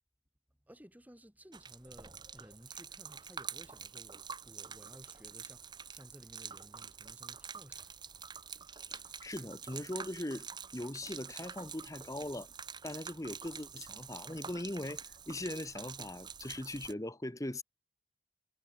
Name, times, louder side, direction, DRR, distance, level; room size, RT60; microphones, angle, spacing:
voice 1, 0.7-7.9, equal, 10° right, 3.4 m, -57 dB
Gurgling / Liquid, 1.5-16.9, right 6 dB, 25° right, 1.3 m, -47 dB
voice 2, 8.8-10.5 10.7-12.5 12.8-17.6, left 1 dB, 20° left, 1.1 m, -40 dB
head